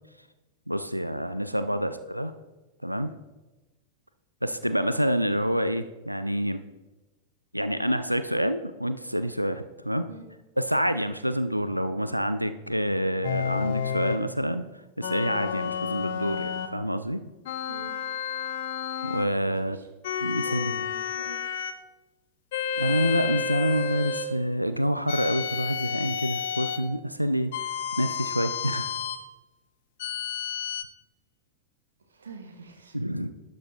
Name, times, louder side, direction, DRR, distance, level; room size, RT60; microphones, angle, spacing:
voice 1, 0.7-2.3 2.8-3.1 4.4-6.6 7.5-10.1 10.6-17.2 19.0-19.8 20.2-20.9 22.8-27.7 28.0-28.9 32.9-33.3, equal, 90° right, 11 dB, 0.4 m, -27 dB
sound 1, 13.2-14.3 15.0-16.8 17.4-19.3 20.0-21.8 22.5-24.3 25.1-26.9 27.5-29.2 30.0-30.8, left 7 dB, 55° left, 0.6 m, -31 dB
voice 2, 19.4-19.9 20.4-21.4 32.0-33.0, right 3 dB, 70° right, 6 dB, 1.3 m, -45 dB
11.5 x 6.3 x 4.2 m, 1.1 s
figure-of-eight pair, 90°, 0 cm